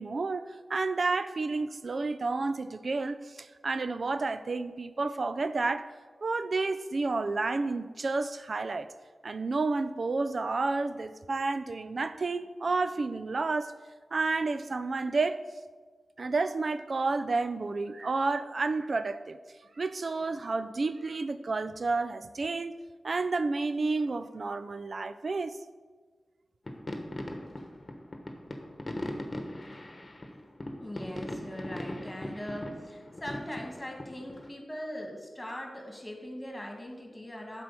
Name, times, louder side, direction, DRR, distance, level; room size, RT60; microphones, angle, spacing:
voice 1, 0.0-5.9 6.2-8.9 9.2-13.7 14.1-15.4 16.2-19.4 19.8-22.8 23.0-25.6, right 3 dB, 60° right, 11 dB, 0.4 m, -30 dB
sound 1, 26.7-34.5, left 1 dB, 35° left, 1.2 m, -39 dB
voice 2, 30.8-37.6, equal, 20° left, 1 dB, 2.1 m, -40 dB
7.7 x 4.4 x 6.9 m, 1.4 s
cardioid pair, 45°, 0 cm